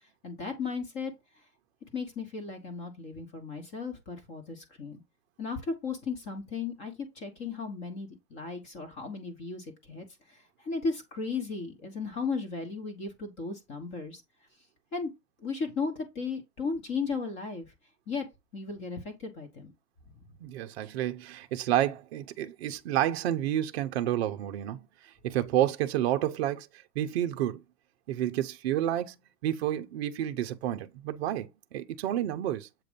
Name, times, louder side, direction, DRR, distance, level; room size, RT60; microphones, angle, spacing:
voice 1, 0.2-1.1 1.9-5.0 5.4-14.2 14.9-15.1 15.4-17.7 18.1-18.3 18.5-19.7, left 4 dB, 25° left, 1.2 m, -35 dB
voice 2, 20.4-24.9 25.2-26.7 27.0-27.6 28.1-29.2 29.4-32.7, right 12 dB, 40° right, 0.7 m, -30 dB
7.6 x 2.6 x 5.1 m
hypercardioid pair, 145°, 49 cm